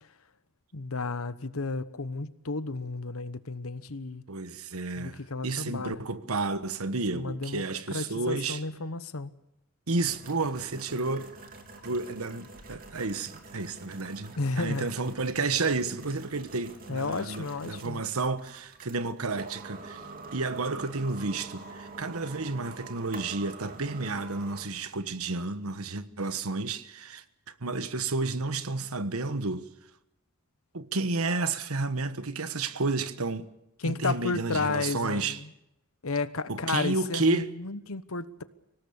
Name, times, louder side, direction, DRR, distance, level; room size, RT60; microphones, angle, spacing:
voice 1, 0.7-4.2 5.0-6.0 7.1-7.6 7.9-9.3 14.4-14.9 16.9-18.0 33.8-35.5 36.0-38.4, left 3 dB, 85° left, 1.1 m, -32 dB
voice 2, 4.3-8.6 9.9-11.3 11.8-20.0 20.3-27.2 27.6-29.7 30.7-33.5 33.8-35.4 36.5-37.5, right 3 dB, 90° right, 1.3 m, -31 dB
sound 1, 10.0-24.6, right 3 dB, 40° right, 3.1 m, -46 dB
25.0 x 18.0 x 7.1 m
head